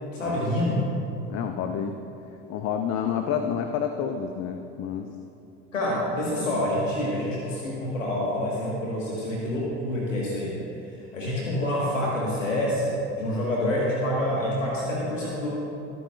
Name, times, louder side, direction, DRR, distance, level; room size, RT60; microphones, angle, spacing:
voice 1, 0.1-0.8 5.7-10.6 11.1-15.5, left 1 dB, 85° left, -4 dB, 1.7 m, -27 dB
voice 2, 1.3-2.0 2.5-5.1, left 8 dB, 45° left, 6 dB, 0.7 m, -29 dB
21.5 x 9.3 x 2.4 m, 2.7 s
figure-of-eight pair, 65°, 38 cm